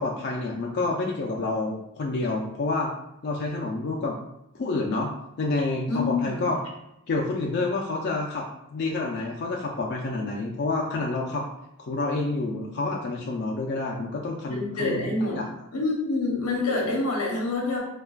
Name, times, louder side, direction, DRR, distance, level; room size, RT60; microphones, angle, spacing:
voice 1, 0.0-2.9 3.2-4.2 4.5-5.1 5.4-6.6 7.1-8.4 8.7-11.5 11.8-15.0 15.3-15.4, left 3 dB, 50° left, -1 dB, 0.4 m, -28 dB
voice 2, 5.9-6.5 14.5-15.4 15.7-17.8, left 3 dB, 85° left, -1 dB, 0.9 m, -27 dB
4.4 x 2.3 x 2.3 m, 0.82 s
head